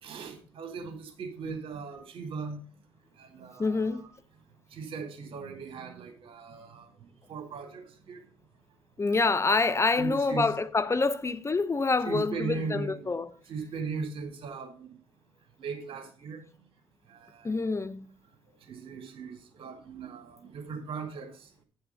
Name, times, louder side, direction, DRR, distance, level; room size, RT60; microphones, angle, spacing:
voice 1, 0.0-2.6 3.1-4.1 4.7-8.3 9.1-9.2 10.0-10.4 12.0-13.1 13.5-15.0 15.6-16.5 17.1-17.6 18.6-21.6, right 5 dB, 70° right, 2.2 m, -39 dB
voice 2, 3.6-4.0 9.0-13.3 17.4-18.1, left 3 dB, 30° left, 0.7 m, -27 dB
9.6 x 5.7 x 5.4 m
supercardioid pair, 65°, 9 cm